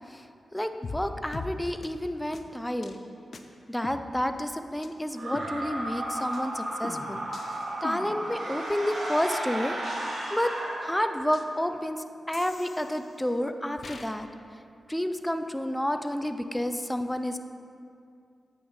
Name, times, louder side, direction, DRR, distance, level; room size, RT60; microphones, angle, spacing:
voice 1, 0.5-3.0 3.7-7.2 7.8-9.8 10.3-10.5 10.8-14.3 14.9-17.4, left 1 dB, 10° left, 8 dB, 0.5 m, -30 dB
sound 1, 0.8-1.0 1.3-1.5 1.8-1.9 2.3-2.4 2.8-3.0 3.3-3.4 3.8-4.5 4.8-4.9 5.3-5.9 6.3-6.5 6.8-9.5 9.8-10.7 11.3-11.4 12.3-13.3 13.8-14.1, left 3 dB, 65° left, 0.5 m, -42 dB
sound 2, 5.1-11.6, right 1 dB, 70° right, 1.3 m, -34 dB
8.5 x 5.6 x 4.1 m, 2.5 s
supercardioid pair, 40°, 0 cm